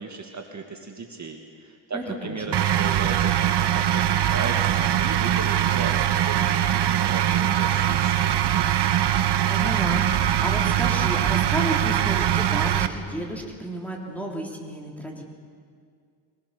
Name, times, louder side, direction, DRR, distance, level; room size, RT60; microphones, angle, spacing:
voice 1, 0.0-8.4, right 4 dB, 35° right, 2 dB, 1.9 m, -35 dB
voice 2, 1.9-2.6 9.5-15.2, right 1 dB, 5° left, 0 dB, 3.3 m, -32 dB
sound 1, 2.5-12.9, right 11 dB, 60° right, 1.1 m, -22 dB
23.5 x 19.5 x 6.8 m, 2.2 s
cardioid pair, 100°, 47 cm